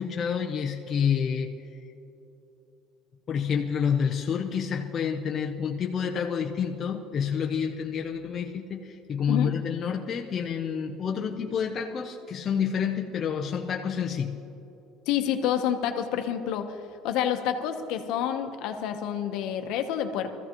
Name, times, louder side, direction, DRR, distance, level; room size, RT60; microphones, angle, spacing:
voice 1, 0.0-1.5 3.3-14.4, left 7 dB, 25° left, 0 dB, 0.6 m, -28 dB
voice 2, 15.1-16.8 17.0-20.3, left 9 dB, 55° left, 6 dB, 0.9 m, -28 dB
22.0 x 14.5 x 3.0 m, 3.0 s
cardioid pair, 180°, 0 cm